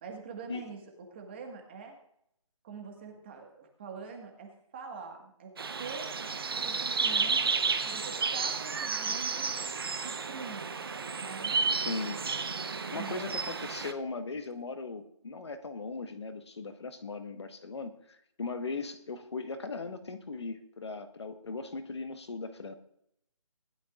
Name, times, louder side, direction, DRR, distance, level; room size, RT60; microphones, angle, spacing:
voice 1, 0.0-0.8 1.1-1.9 2.6-6.1 6.5-7.5 7.8-9.5 9.9-10.7 11.1-12.1 12.9-13.2, right 5 dB, 20° right, 2 dB, 1.7 m, -44 dB
sound 1, 5.6-13.9, right 5 dB, 40° right, 0.8 m, -32 dB
voice 2, 11.7-12.2 12.9-22.7, left 4 dB, 50° left, 7 dB, 1.4 m, -38 dB
19.5 x 12.0 x 2.5 m, 0.72 s
figure-of-eight pair, 170°, 18 cm